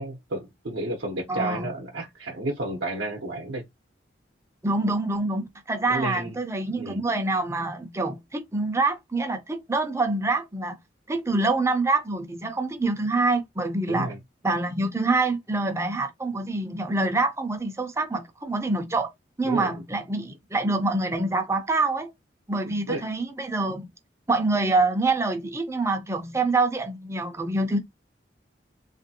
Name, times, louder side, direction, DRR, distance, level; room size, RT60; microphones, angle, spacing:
voice 1, 0.0-3.6 5.9-6.4 6.7-7.0 13.9-14.2 19.4-19.8 22.9-23.0, right 2 dB, 70° right, 0.6 m, -31 dB
voice 2, 1.3-1.7 4.6-10.8 11.1-14.1 14.4-19.1 19.4-22.1 22.5-23.8 24.3-27.8, right 3 dB, 15° right, 0.4 m, -26 dB
3.1 x 2.5 x 2.7 m
head